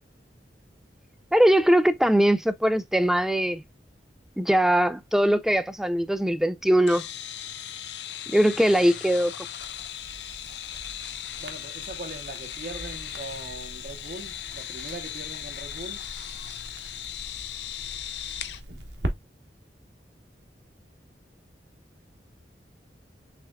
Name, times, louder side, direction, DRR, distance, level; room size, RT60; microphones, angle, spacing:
voice 1, 1.3-3.6 4.4-7.0 8.3-9.3, right 1 dB, 5° right, 0.4 m, -21 dB
sound 1, 6.9-18.6, left 10 dB, 75° left, 0.6 m, -38 dB
Crackle, 9.6-19.1, right 1 dB, 80° right, 1.0 m, -41 dB
voice 2, 11.4-16.1, right 2 dB, 55° right, 0.8 m, -40 dB
6.2 x 3.5 x 2.2 m
head